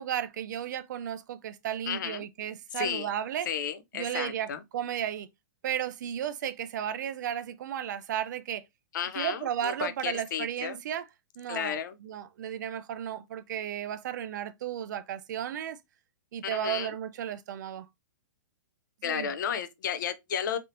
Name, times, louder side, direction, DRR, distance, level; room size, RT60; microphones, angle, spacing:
voice 1, 0.0-3.5 3.9-5.3 5.6-8.6 9.2-11.1 11.4-11.8 12.0-15.8 16.3-17.9 19.0-19.3, right 10 dB, 65° right, 0.4 m, -34 dB
voice 2, 1.9-2.2 2.8-3.1 3.5-4.6 8.9-10.8 11.5-12.0 16.4-16.9 19.0-20.6, left 8 dB, 65° left, 0.5 m, -33 dB
3.4 x 2.7 x 2.5 m
hypercardioid pair, 155°, 11 cm